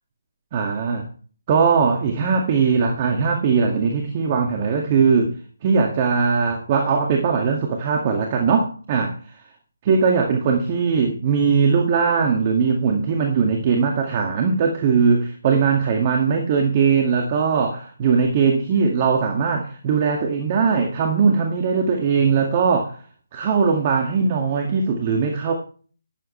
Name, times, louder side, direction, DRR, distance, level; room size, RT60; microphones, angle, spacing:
voice 1, 0.5-1.1 1.5-5.3 5.6-9.1 9.9-23.0 23.3-25.5, right 5 dB, 30° right, 2 dB, 2.0 m, -20 dB
12.5 x 11.0 x 3.2 m, 0.41 s
figure-of-eight pair, 155°, 0 cm